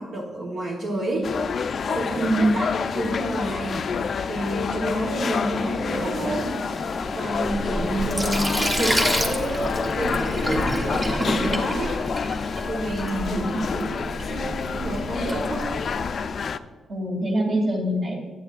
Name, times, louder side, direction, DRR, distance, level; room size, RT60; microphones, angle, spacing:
voice 1, 0.0-3.9 4.2-6.6 7.2-12.0 12.3-12.4 12.7-15.7, right 1 dB, 70° right, -5 dB, 1.2 m, -29 dB
sound 1, 1.2-16.6, left 6 dB, 55° left, 0.3 m, -28 dB
voice 2, 2.1-2.7 13.0-13.9 16.9-18.2, right 1 dB, 45° right, 0 dB, 2.4 m, -24 dB
sound 2, 5.6-12.6, equal, 5° right, 1.6 m, -38 dB
Sink (filling or washing), 7.3-16.1, equal, 20° right, 1.1 m, -29 dB
8.5 x 7.9 x 2.5 m, 1.3 s
cardioid pair, 70°, 0 cm